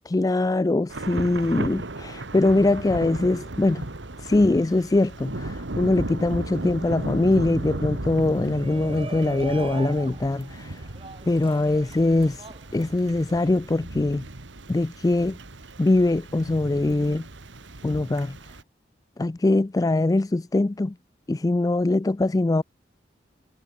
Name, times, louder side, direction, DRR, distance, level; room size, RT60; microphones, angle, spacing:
voice 1, 0.1-3.9 4.2-10.9 11.3-12.5 12.7-14.2 14.7-15.4 15.8-17.3 17.8-18.4 19.2-21.0 21.3-22.6, left 2 dB, 20° left, 0.4 m, -22 dB
Thunder / Rain, 0.9-18.6, right 2 dB, 85° right, 1.9 m, -36 dB
Shout, 8.4-13.5, right 3 dB, 30° right, 4.0 m, -40 dB
head